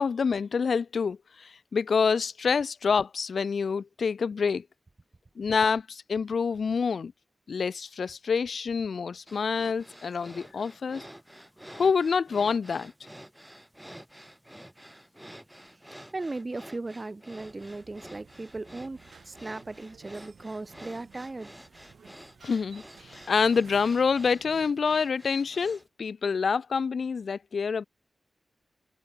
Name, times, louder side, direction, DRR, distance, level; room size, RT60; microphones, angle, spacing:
voice 1, 0.0-4.7 5.4-7.1 7.5-11.0 11.7-12.9 22.4-27.8, left 5 dB, 70° left, 1.1 m, -27 dB
sound 1, 9.3-25.9, equal, 5° right, 7.4 m, -50 dB
voice 2, 16.1-19.0 19.2-21.5, right 2 dB, 30° right, 2.3 m, -37 dB
sound 2, 17.4-24.7, right 6 dB, 80° right, 3.7 m, -55 dB
wide cardioid pair, 90°, 0 cm